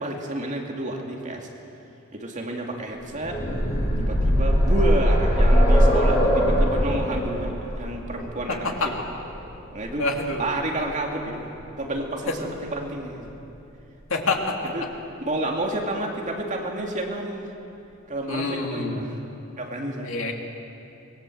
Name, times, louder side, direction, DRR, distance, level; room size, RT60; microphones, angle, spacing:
voice 1, 0.0-1.5 2.1-3.4 4.0-9.0 9.7-10.1 10.4-11.5 11.8-13.3 14.7-14.8 15.3-17.5 18.1-19.2 19.6-20.1, right 1 dB, 35° right, 1 dB, 2.5 m, -30 dB
sound 1, 3.0-10.8 12.0-12.1 12.4-12.5, equal, 30° left, 7.4 m, -21 dB
voice 2, 8.5-8.9 10.0-10.5 14.1-14.5 18.3-19.0 20.0-20.3, left 2 dB, 70° left, 1 dB, 2.9 m, -26 dB
25.5 x 21.5 x 7.8 m, 2.8 s
head